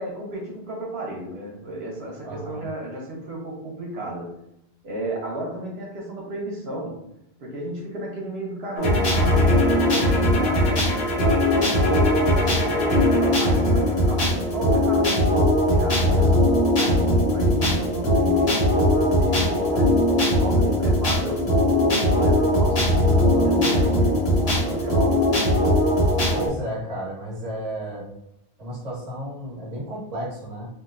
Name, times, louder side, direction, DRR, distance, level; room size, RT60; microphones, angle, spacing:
voice 1, 0.0-4.3 4.8-7.0 7.4-16.5 16.8-20.1 20.4-25.4, right 1 dB, 80° right, -3 dB, 0.9 m, -33 dB
voice 2, 2.2-2.6 26.3-28.1 28.6-30.7, right 1 dB, 40° right, -5 dB, 1.1 m, -33 dB
sound 1, 8.8-26.5, left 1 dB, 80° left, 1.3 m, -20 dB
3.0 x 2.5 x 2.5 m, 0.80 s
omnidirectional pair, 1.0 m